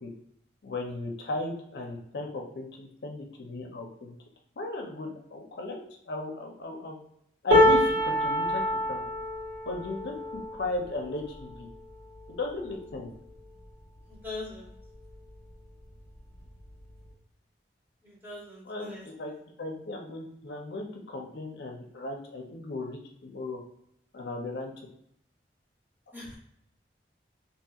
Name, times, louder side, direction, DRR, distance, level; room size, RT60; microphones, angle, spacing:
voice 1, 0.6-4.1 4.6-5.8 6.1-7.0 7.4-8.6 8.9-9.0 9.7-11.7 12.3-13.1 18.7-19.3 19.6-23.6 24.1-24.7, left 2 dB, 70° left, 1 dB, 0.5 m, -36 dB
sound 1, 7.5-13.7 14.2-14.4 14.7-15.5 16.5-16.6, left 1 dB, 90° right, 1.2 m, -27 dB
voice 2, 14.1-14.7 18.0-19.0 26.1-26.4, left 2 dB, 10° right, -5 dB, 0.8 m, -41 dB
2.8 x 2.7 x 2.3 m, 0.72 s
head